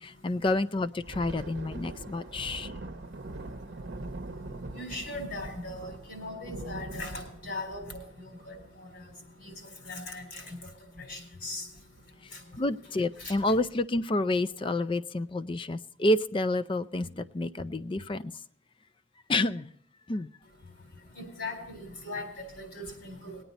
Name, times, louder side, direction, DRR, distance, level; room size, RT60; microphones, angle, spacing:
voice 1, 0.0-2.7 12.6-18.3 19.3-19.7 20.1-20.3, left 2 dB, 25° left, 0.4 m, -29 dB
Thunder, 0.9-9.9 10.3-10.5 10.9-11.1 11.7-12.2, right 2 dB, 60° right, 0.8 m, -43 dB
voice 2, 4.7-7.8 8.5-9.0 9.4-9.5 9.8-10.6 11.0-11.6 13.2-13.3 21.2-22.3 22.6-23.4, left 2 dB, 60° left, 4.1 m, -39 dB
20.5 x 9.0 x 4.1 m
head